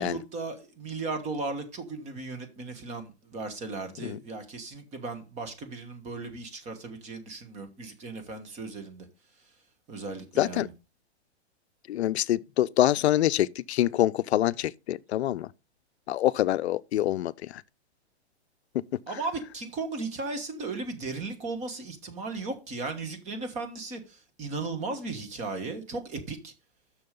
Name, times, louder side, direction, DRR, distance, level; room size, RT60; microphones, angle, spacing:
voice 1, 0.0-9.1 9.9-10.7 19.1-26.5, right 3 dB, 20° right, 1.4 m, -36 dB
voice 2, 10.4-10.7 11.9-15.5 16.1-17.6, left 13 dB, 70° left, 0.6 m, -25 dB
6.7 x 6.4 x 5.2 m
hypercardioid pair, 150°, 33 cm